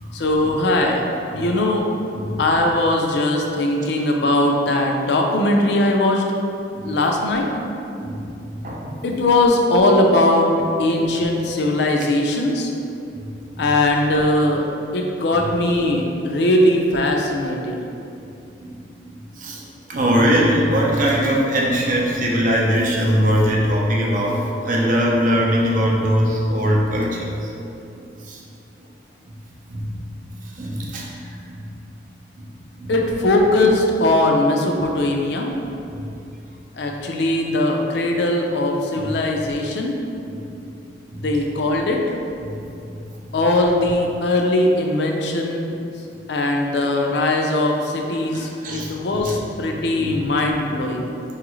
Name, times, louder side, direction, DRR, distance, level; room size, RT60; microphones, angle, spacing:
voice 1, 0.1-1.0 1.3-1.9 2.4-6.2 6.8-7.5 9.0-10.5 10.8-12.7 13.6-14.6 14.9-17.8 32.9-35.5 36.8-40.0 41.2-42.0 43.3-45.8 46.3-51.1, left 1 dB, 70° left, 1 dB, 0.4 m, -20 dB
voice 2, 8.6-9.0 18.6-18.7 19.4-19.6 19.9-27.5 28.3-28.4 29.7-29.9 30.6-31.2 31.5-31.6 32.8-32.9 38.9-39.1 40.2-40.4 41.1-41.2 48.3-49.3 50.0-50.2, equal, 45° right, -2 dB, 0.5 m, -21 dB
4.7 x 2.4 x 3.0 m, 2.7 s
head